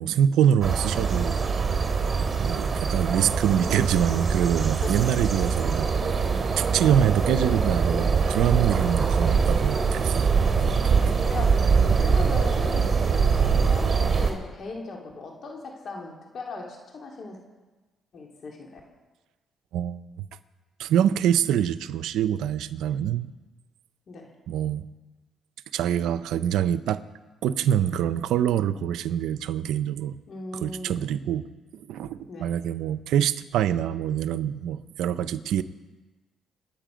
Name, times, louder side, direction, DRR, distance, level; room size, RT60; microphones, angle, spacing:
voice 1, 0.0-1.4 2.4-6.1 6.6-10.3 10.6-11.1 19.7-20.2 20.8-23.3 24.5-24.9 25.7-27.0 27.4-30.1 30.5-31.5 31.7-35.6, right 10 dB, 85° right, 14 dB, 0.6 m, -25 dB
sound 1, 0.6-14.3, right 5 dB, 40° right, 2.8 m, -23 dB
voice 2, 8.7-9.7 11.2-11.5 11.8-17.4 18.1-18.8 24.1-24.3 30.3-31.0 32.3-32.5, left 3 dB, 55° left, 0 dB, 2.8 m, -39 dB
27.0 x 9.3 x 5.1 m, 1.2 s
cardioid pair, 90°, 0 cm